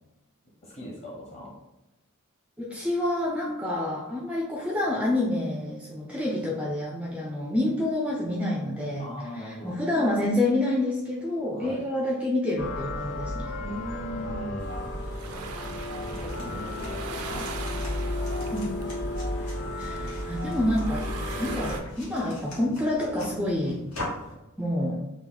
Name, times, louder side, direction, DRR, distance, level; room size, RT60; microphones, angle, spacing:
voice 1, 0.6-1.6 9.0-9.8 11.5-11.9 13.6-14.7 16.1-17.9, equal, 30° left, -2 dB, 0.9 m, -39 dB
voice 2, 2.6-9.1 9.4-13.5 18.5-18.7 19.8-21.1 21.4-23.8 24.6-25.0, left 1 dB, 5° right, -2 dB, 0.3 m, -28 dB
sound 1, 12.6-21.8, left 1 dB, 55° left, 0.6 m, -33 dB
sound 2, 14.6-21.8, right 4 dB, 85° right, 0.4 m, -41 dB
sound 3, 16.0-24.3, left 1 dB, 80° left, 1.3 m, -43 dB
2.9 x 2.4 x 3.8 m, 0.98 s
head